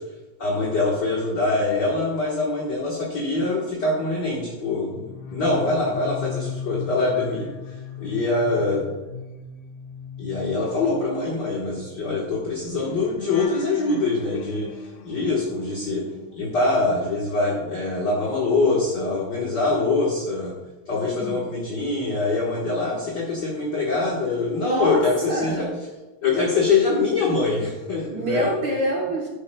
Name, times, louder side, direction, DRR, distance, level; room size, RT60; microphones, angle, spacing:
voice 1, 0.4-7.5 8.0-8.9 10.2-16.0 16.3-20.5 20.9-25.7 26.2-28.5, left 3 dB, 45° left, -3 dB, 1.4 m, -24 dB
sound 1, 4.8-17.1 17.4-19.5 19.8-20.1, left 6 dB, 75° left, 1.7 m, -39 dB
voice 2, 21.1-21.5 24.6-25.7 28.1-29.3, right 2 dB, 85° right, -1 dB, 0.9 m, -27 dB
12.0 x 10.5 x 2.2 m, 1.1 s
omnidirectional pair, 3.6 m